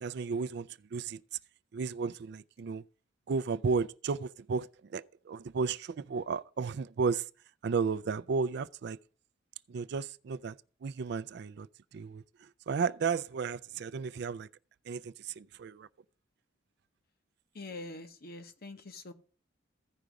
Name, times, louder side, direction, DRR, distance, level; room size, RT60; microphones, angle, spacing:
voice 1, 0.0-1.2 1.7-2.8 3.3-7.3 7.6-9.0 9.7-10.6 10.8-11.7 11.9-12.2 12.7-14.5 14.9-15.9, right 5 dB, 60° right, 0.4 m, -33 dB
voice 2, 17.5-19.1, left 2 dB, 50° left, 1.0 m, -44 dB
15.0 x 5.2 x 4.7 m
head